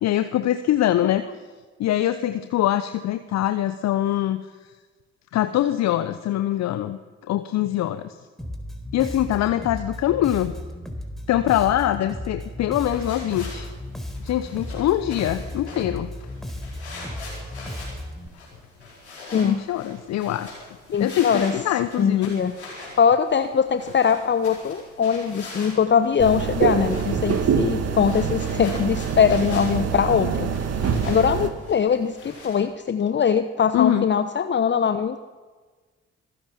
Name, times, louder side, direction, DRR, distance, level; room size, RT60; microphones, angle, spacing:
voice 1, 0.0-1.2 1.8-4.4 5.3-7.0 7.3-8.1 8.9-10.5 11.3-13.7 14.2-16.1 19.3-22.3 33.7-34.1, left 12 dB, 55° left, 11 dB, 0.9 m, -23 dB
Bass guitar, 8.4-18.3, left 1 dB, ahead, 4.4 m, -35 dB
sound 1, 12.7-32.6, left 2 dB, 90° left, 4.6 m, -43 dB
voice 2, 20.9-21.5 22.0-22.5 23.0-30.5 30.8-35.2, left 7 dB, 35° left, 10 dB, 1.0 m, -21 dB
sound 2, 26.2-31.5, right 6 dB, 50° right, 2.2 m, -25 dB
25.0 x 15.5 x 7.4 m, 1.4 s
figure-of-eight pair, 40°, 32 cm